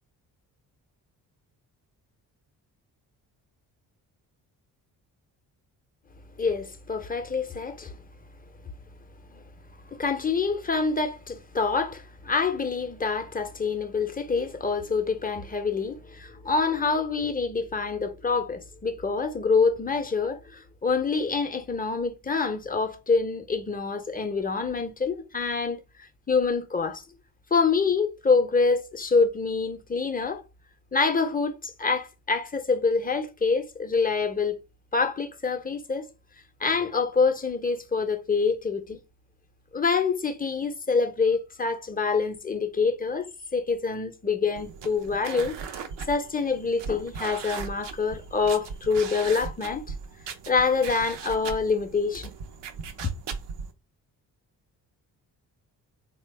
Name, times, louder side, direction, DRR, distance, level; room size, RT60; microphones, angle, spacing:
voice 1, 6.4-8.0 9.3-9.4 9.9-27.0 27.5-30.4 30.9-34.6 34.9-36.1 36.6-39.0 39.7-49.8 50.5-52.3, left 4 dB, 20° left, 0.7 m, -26 dB
sound 1, 44.6-53.7, right 6 dB, 60° right, 0.7 m, -39 dB
3.2 x 2.3 x 3.2 m
hypercardioid pair, 40°, 47 cm